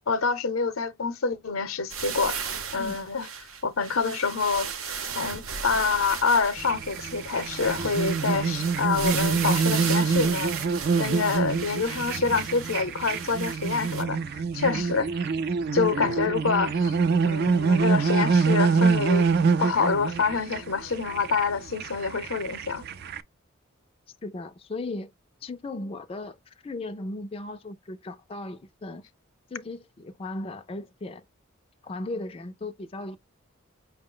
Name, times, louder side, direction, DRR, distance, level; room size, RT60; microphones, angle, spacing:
voice 1, 0.1-3.3 3.6-10.7 11.0-15.1 15.7-17.0 17.2-19.3 19.6-22.8, left 5 dB, 85° left, 0.7 m, -27 dB
sound 1, 1.9-14.0, right 7 dB, 80° right, 0.7 m, -35 dB
sound 2, 6.6-23.2, right 5 dB, 50° right, 0.4 m, -26 dB
voice 2, 24.2-25.1 25.4-29.0 29.5-31.2 31.8-33.2, left 2 dB, 25° left, 0.4 m, -36 dB
5.5 x 2.1 x 3.7 m
head